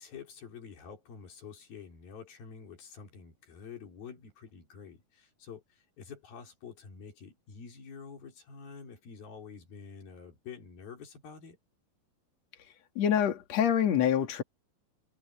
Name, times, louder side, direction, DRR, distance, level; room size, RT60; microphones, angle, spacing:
voice 1, 0.0-11.6, left 6 dB, 80° left, 6.1 m, -48 dB
voice 2, 13.0-14.4, left 9 dB, 50° left, 3.0 m, -26 dB
omnidirectional pair, 4.1 m